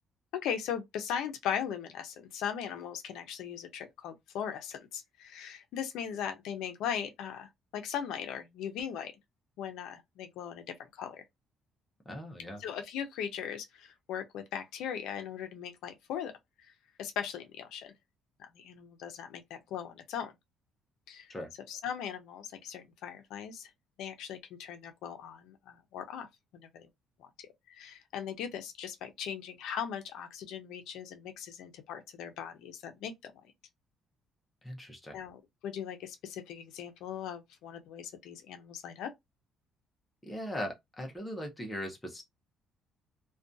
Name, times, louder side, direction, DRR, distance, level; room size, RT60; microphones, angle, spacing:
voice 1, 0.3-9.1 9.6-11.2 12.6-16.3 17.0-17.9 18.4-20.3 21.1-21.3 21.7-23.7 24.0-26.3 26.5-26.9 27.2-27.3 27.7-33.3 35.1-39.1, left 8 dB, 70° left, 0.5 m, -39 dB
voice 2, 12.1-12.6 21.3-21.5 34.6-35.2 40.2-42.2, equal, 10° left, 0.5 m, -39 dB
2.4 x 2.2 x 2.5 m
cardioid pair, 175°, 0 cm